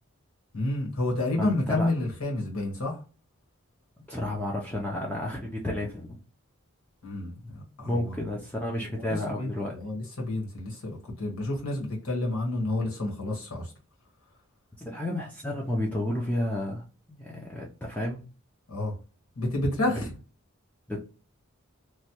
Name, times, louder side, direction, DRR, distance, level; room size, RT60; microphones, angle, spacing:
voice 1, 0.5-3.0 7.0-8.1 8.8-10.9 11.2-13.7 18.7-18.9 19.4-20.0, left 2 dB, 85° left, -1 dB, 1.5 m, -30 dB
voice 2, 1.4-1.9 4.1-6.2 7.9-9.8 14.8-16.8 17.1-18.2 20.9-21.0, left 1 dB, 5° left, -2 dB, 0.4 m, -31 dB
3.1 x 2.2 x 2.9 m, 0.34 s
head